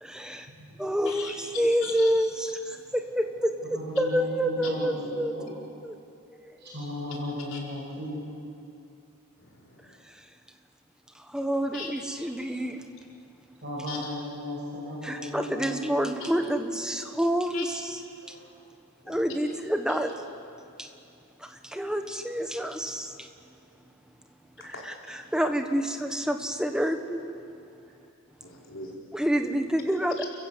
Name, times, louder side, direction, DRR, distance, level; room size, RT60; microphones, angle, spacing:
voice 1, 0.0-0.5 0.8-2.5 2.9-5.3 5.8-6.0 6.3-6.8 10.0-10.2 11.1-12.8 15.0-18.0 18.3-18.4 19.1-20.1 20.8-20.9 21.4-23.3 24.6-27.2 29.1-30.2, equal, 5° right, 6 dB, 1.3 m, -28 dB
voice 2, 1.0-1.4 1.8-2.1 7.5-7.6 9.4-10.0 11.7-11.9 13.9-14.1 16.2-16.3 17.5-17.6 19.0-19.3 24.6-25.2 28.4-29.0, left 4 dB, 60° left, -3 dB, 4.7 m, -40 dB
voice 3, 3.7-5.5 6.6-8.2 13.6-15.7 18.2-18.5, left 1 dB, 50° right, -5 dB, 5.6 m, -36 dB
30.0 x 15.0 x 8.1 m, 2.6 s
head